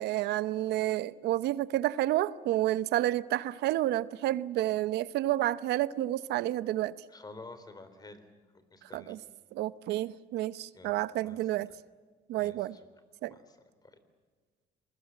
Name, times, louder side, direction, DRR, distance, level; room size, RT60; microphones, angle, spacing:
voice 1, 0.0-6.9 8.9-9.2 9.5-11.7 12.3-12.8 13.2-13.3, right 14 dB, 80° right, 0.8 m, -30 dB
voice 2, 7.1-8.2 8.7-9.2 10.7-11.4 12.4-12.8 13.2-13.6 13.8-13.9, left 3 dB, 25° left, 3.6 m, -50 dB
28.0 x 21.5 x 7.6 m
cardioid pair, 110°, 17 cm